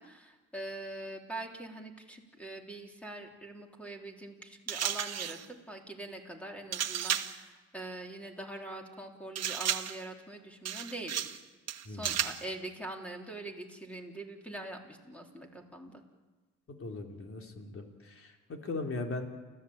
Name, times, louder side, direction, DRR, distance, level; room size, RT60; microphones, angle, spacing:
voice 1, 0.0-11.3 11.9-16.0, right 2 dB, 5° left, 2 dB, 3.7 m, -43 dB
sound 1, 4.7-5.5 6.7-7.4 9.4-10.0 10.6-11.4 11.7-12.5, right 9 dB, 55° right, 1.4 m, -33 dB
voice 2, 11.9-12.3 16.7-19.3, left 3 dB, 45° left, 3 dB, 3.6 m, -39 dB
29.5 x 15.0 x 8.8 m, 1.3 s
cardioid pair, 90°, 30 cm